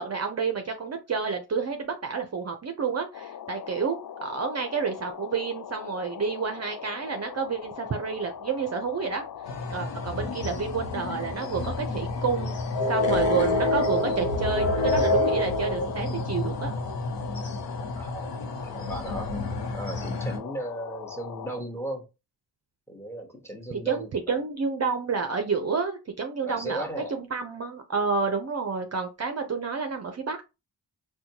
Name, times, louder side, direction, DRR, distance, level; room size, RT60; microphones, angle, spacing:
voice 1, 0.0-9.2 9.7-12.6 12.9-16.7 23.9-30.4, right 5 dB, 40° right, 0.6 m, -29 dB
sound 1, 3.1-21.6, left 8 dB, 55° left, 0.4 m, -40 dB
sound 2, 9.5-20.4, left 2 dB, 90° left, 0.9 m, -28 dB
voice 2, 18.0-22.1 22.9-24.4 26.5-27.2, right 1 dB, 5° left, 1.0 m, -37 dB
4.2 x 2.3 x 2.8 m
wide cardioid pair, 100°, 42 cm